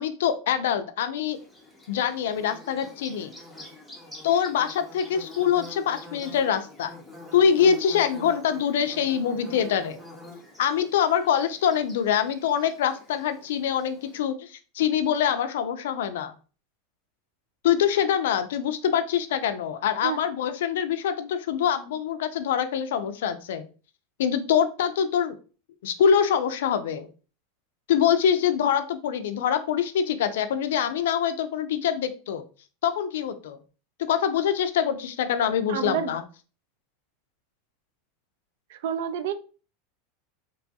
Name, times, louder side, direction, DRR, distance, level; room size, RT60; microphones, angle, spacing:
voice 1, 0.0-1.4 1.9-3.3 4.2-6.9 7.3-10.0 10.6-16.3 17.6-23.7 24.2-25.4 25.8-27.1 27.9-32.4 32.8-33.6 34.1-36.2, left 8 dB, 80° left, 0.4 m, -24 dB
Bird / Buzz, 1.3-14.2, left 2 dB, ahead, 0.6 m, -46 dB
voice 2, 35.7-36.1 38.7-39.3, right 9 dB, 65° right, 0.3 m, -28 dB
2.9 x 2.3 x 2.7 m
supercardioid pair, 175°, 0 cm